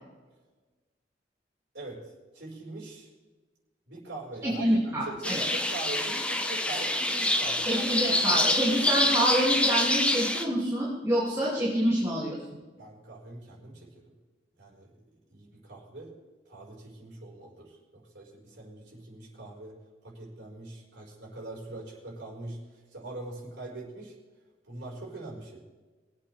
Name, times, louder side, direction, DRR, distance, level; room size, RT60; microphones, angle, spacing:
voice 1, 2.3-3.1 3.9-7.8 8.3-8.4 12.8-13.9 14.6-14.9 15.3-16.1 16.5-19.7 20.0-24.1 24.6-25.6, right 2 dB, 75° right, -3 dB, 4.8 m, -42 dB
voice 2, 4.4-5.4 7.7-12.4, equal, 15° right, -7 dB, 2.5 m, -27 dB
sound 1, 5.2-10.4, left 1 dB, 5° left, 0.9 m, -26 dB
22.5 x 8.6 x 3.4 m, 1.3 s
head